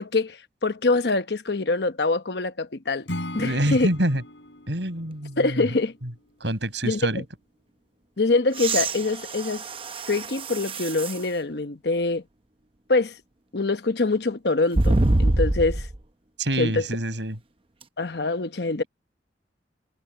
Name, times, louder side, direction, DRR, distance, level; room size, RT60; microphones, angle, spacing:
voice 1, 0.0-3.1 3.3-3.9 5.4-5.9 6.8-7.0 8.2-9.6 10.1-12.2 12.9-13.2 13.5-15.9 16.6-16.8 18.0-18.8, left 3 dB, 65° left, 1.0 m, -24 dB
Acoustic guitar / Strum, 3.1-6.2, left 1 dB, 80° left, 6.3 m, -38 dB
voice 2, 3.3-4.2 4.7-5.7 6.4-7.2 16.4-17.4, right 1 dB, 75° right, 7.9 m, -26 dB
sound 1, 8.5-11.3 11.9-12.0 14.7-16.0 17.8-17.9, right 2 dB, 30° right, 0.8 m, -25 dB
head